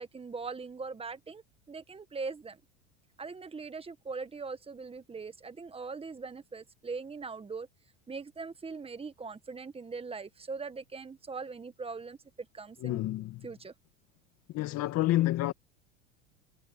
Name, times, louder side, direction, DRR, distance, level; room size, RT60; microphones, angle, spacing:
voice 1, 0.0-1.4 1.7-2.6 3.2-7.7 8.1-13.0 13.4-13.7, right 4 dB, 15° right, 1.7 m, -41 dB
voice 2, 12.8-13.5 14.5-15.5, left 16 dB, 50° left, 2.2 m, -29 dB
hypercardioid pair, 100°, 34 cm